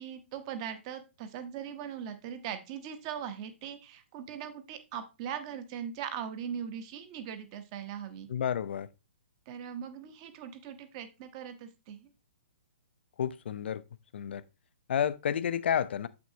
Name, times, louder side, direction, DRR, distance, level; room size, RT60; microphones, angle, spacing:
voice 1, 0.0-8.3 9.5-12.1, right 8 dB, 30° right, 0.9 m, -40 dB
voice 2, 8.3-8.9 13.2-13.8 14.1-14.4 14.9-16.1, left 9 dB, 60° left, 0.5 m, -30 dB
7.1 x 6.1 x 2.8 m
hypercardioid pair, 160°, 7 cm